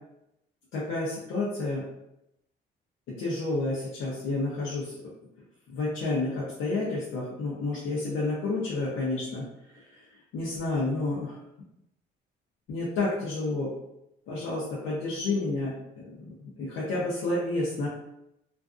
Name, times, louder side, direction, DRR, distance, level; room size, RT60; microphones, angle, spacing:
voice 1, 0.7-1.9 3.1-5.0 5.7-9.5 9.7-9.8 10.3-11.4 12.7-13.7 14.3-15.7 16.0-17.9, left 2 dB, 90° left, -7 dB, 0.7 m, -30 dB
2.5 x 2.3 x 2.4 m, 0.84 s
cardioid pair, 90°, 20 cm